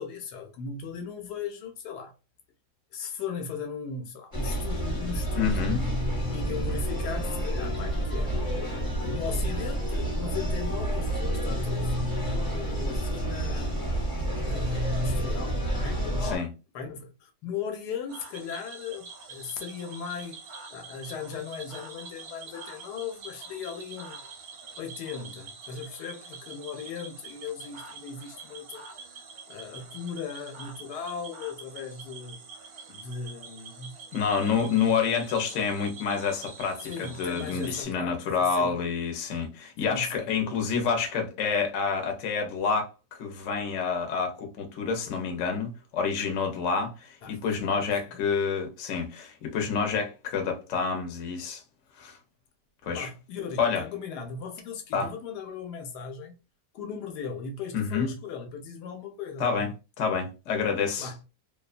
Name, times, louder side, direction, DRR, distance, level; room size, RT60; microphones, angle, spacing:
voice 1, 0.0-2.1 2.9-5.7 6.3-8.4 9.0-11.9 12.3-13.7 14.4-16.1 16.7-20.4 20.7-24.2 24.8-29.1 29.5-32.4 32.9-34.0 34.4-34.7 36.8-38.7 39.8-40.4 47.2-47.8 48.1-48.2 52.9-56.4 56.7-59.7 61.0-61.2, left 6 dB, 75° left, 1.1 m, -38 dB
sound 1, 4.3-16.4, right 1 dB, 25° left, 0.9 m, -29 dB
voice 2, 5.4-5.8 16.2-16.5 34.1-42.9 43.2-51.6 52.0-52.2 52.8-53.1 53.6-53.8 54.9-55.1 57.7-58.1 59.4-59.7 60.0-61.1, left 5 dB, 60° left, 0.9 m, -28 dB
Cricket / Frog, 18.1-37.8, right 4 dB, 55° right, 0.7 m, -45 dB
2.7 x 2.2 x 2.4 m
omnidirectional pair, 1.8 m